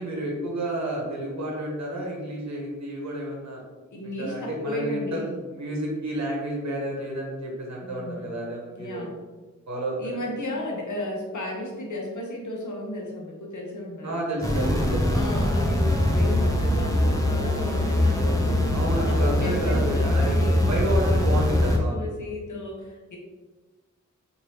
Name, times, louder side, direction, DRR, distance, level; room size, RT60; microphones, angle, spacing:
voice 1, 0.0-3.6 4.0-9.1 9.7-10.2 14.0-15.1 18.7-22.1, right 1 dB, 65° right, -2 dB, 0.8 m, -31 dB
voice 2, 3.9-5.3 7.8-8.3 8.8-9.2 10.0-14.1 15.1-18.8 19.0-20.6 21.0-23.2, left 1 dB, 80° left, -1 dB, 0.8 m, -34 dB
sound 1, 14.4-21.8, left 1 dB, 10° left, 0.6 m, -22 dB
3.1 x 2.6 x 2.7 m, 1.3 s
cardioid pair, 45°, 30 cm